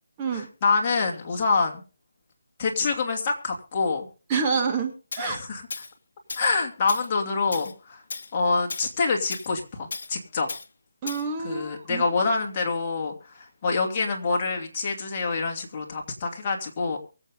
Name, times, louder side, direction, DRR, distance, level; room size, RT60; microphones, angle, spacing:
voice 1, 0.3-1.8 2.6-4.1 5.2-5.6 6.4-8.0 8.3-10.5 11.4-17.0, left 4 dB, 25° left, 1 dB, 2.6 m, -26 dB
voice 2, 4.3-5.4 11.0-12.0, right 5 dB, 20° right, 2 dB, 1.5 m, -27 dB
Tools, 5.1-5.3 5.7-5.9 6.3-6.6 6.9-7.1 7.5-7.7 8.1-8.3 8.7-8.9 9.3-9.5 9.9-10.1 10.5-10.7 11.1-11.3, left 4 dB, 55° left, 1.3 m, -35 dB
23.5 x 8.0 x 3.7 m, 0.35 s
figure-of-eight pair, 165°, 0 cm